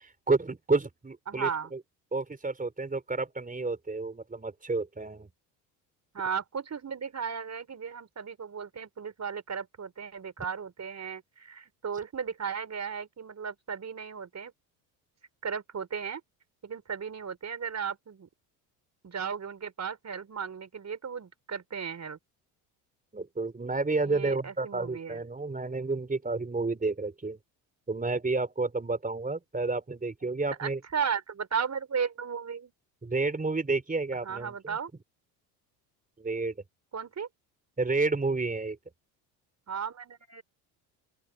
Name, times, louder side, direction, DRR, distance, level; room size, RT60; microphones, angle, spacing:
voice 1, 0.0-1.8 2.1-5.3 23.1-27.4 27.9-30.8 33.0-34.7 36.2-36.6 37.8-38.8, right 3 dB, 15° right, 4.7 m, -30 dB
voice 2, 1.3-1.7 6.1-14.5 15.4-16.2 16.6-18.3 19.0-22.2 24.0-25.2 30.5-32.7 34.2-34.9 36.9-37.3 39.7-40.4, right 6 dB, 35° right, 5.3 m, -35 dB
open air
hypercardioid pair, 70°, 48 cm